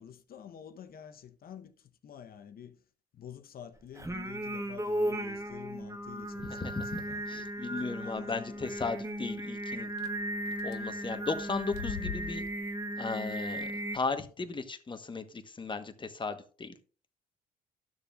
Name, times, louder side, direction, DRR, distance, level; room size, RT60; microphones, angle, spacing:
voice 1, 0.0-2.8 3.1-8.7 14.4-14.5, left 8 dB, 50° left, 1.0 m, -49 dB
Singing, 4.0-14.0, right 1 dB, 15° right, 1.2 m, -36 dB
sound 1, 6.1-6.5 7.1-7.2 7.5-7.6 7.9-8.0 10.0-10.1 10.4-10.8 11.4-12.8, left 8 dB, 85° left, 0.5 m, -42 dB
voice 2, 6.4-9.9 10.6-12.4 13.0-16.7, left 4 dB, 25° left, 1.2 m, -36 dB
12.0 x 6.8 x 2.5 m
hypercardioid pair, 55°, 19 cm